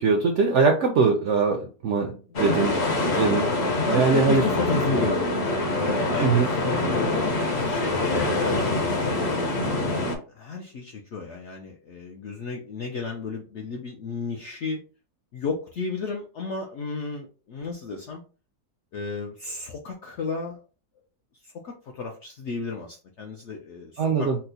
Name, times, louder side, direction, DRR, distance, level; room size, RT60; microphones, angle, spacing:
voice 1, 0.0-2.8 3.2-3.5 3.9-4.4 6.2-6.5 24.0-24.4, right 4 dB, 75° right, 3 dB, 0.7 m, -21 dB
voice 2, 2.3-3.2 3.7-5.3 5.7-8.9 9.2-9.5 9.9-14.8 15.3-18.2 18.9-20.6 21.4-24.3, left 4 dB, 75° left, 2 dB, 0.6 m, -33 dB
sound 1, 2.4-10.2, left 2 dB, 50° left, 0.9 m, -25 dB
4.4 x 2.0 x 2.7 m, 0.36 s
omnidirectional pair, 1.7 m